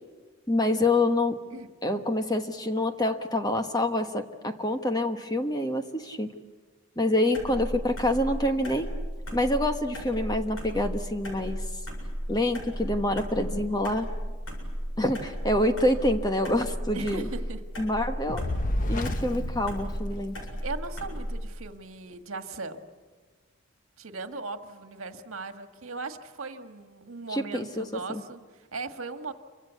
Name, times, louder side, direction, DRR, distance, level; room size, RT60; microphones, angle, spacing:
voice 1, 0.5-1.4 1.8-6.3 7.0-8.9 9.3-11.6 12.3-14.1 15.0-17.2 17.8-18.5 18.9-20.3 27.3-28.2, left 1 dB, 20° left, 7 dB, 1.3 m, -26 dB
sound 1, 7.3-21.5, equal, 70° left, 7.7 m, -35 dB
voice 2, 16.9-17.6 18.8-19.0 20.6-22.9 24.0-29.3, right 3 dB, 80° right, 7 dB, 1.7 m, -38 dB
Fire, 18.3-20.7, left 1 dB, 40° left, 0.9 m, -31 dB
28.0 x 25.0 x 8.3 m, 1.4 s
head